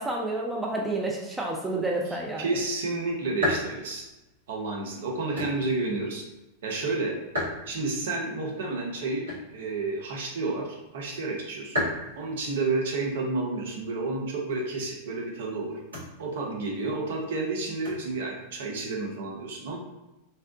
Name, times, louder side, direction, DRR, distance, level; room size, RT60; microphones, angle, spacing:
voice 1, 0.0-2.4, right 2 dB, 10° right, -1 dB, 0.3 m, -29 dB
sound 1, 2.1-19.2, left 1 dB, 75° right, 1.0 m, -39 dB
voice 2, 2.4-4.0 4.5-6.2 6.6-7.1 7.7-11.9 12.2-15.8 16.2-19.8, right 3 dB, 60° right, -1 dB, 0.5 m, -30 dB
2.7 x 2.1 x 2.4 m, 0.97 s
figure-of-eight pair, 90°, 0 cm